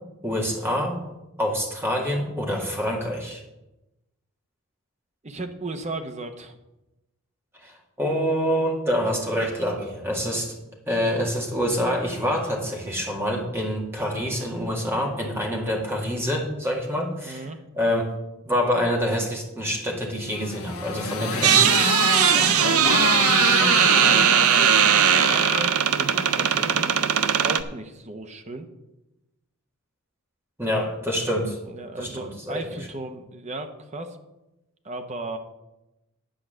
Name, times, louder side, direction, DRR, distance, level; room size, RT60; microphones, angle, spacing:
voice 1, 0.2-1.0 1.4-3.4 7.6-10.6 10.9-17.4 17.8-18.2 18.5-21.6 22.3-22.7 30.6-31.6 32.0-32.5, equal, 10° right, -1 dB, 1.8 m, -26 dB
voice 2, 5.2-6.6 10.3-10.4 17.2-17.6 21.2-21.4 22.5-28.7 31.6-34.2 34.8-35.4, right 2 dB, 30° right, 7 dB, 0.8 m, -36 dB
Motorcycle, 20.3-26.7, left 5 dB, 75° left, 1.2 m, -27 dB
sound 1, 21.4-27.6, right 9 dB, 75° right, 0.6 m, -19 dB
10.5 x 4.8 x 7.6 m, 0.97 s
head